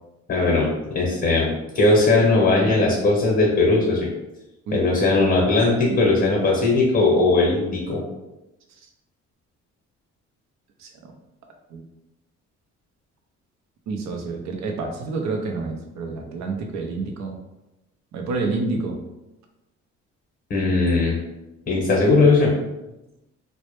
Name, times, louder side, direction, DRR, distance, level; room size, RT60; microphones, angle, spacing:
voice 1, 0.3-4.1 4.7-8.0 20.5-21.2 21.7-22.5, left 3 dB, 35° left, -2 dB, 0.8 m, -19 dB
voice 2, 4.7-5.1 5.9-6.0 10.8-11.1 11.7-11.8 13.9-17.4 18.1-19.0, right 3 dB, 65° right, 3 dB, 0.5 m, -28 dB
2.0 x 2.0 x 2.9 m, 0.98 s
cardioid pair, 90°, 30 cm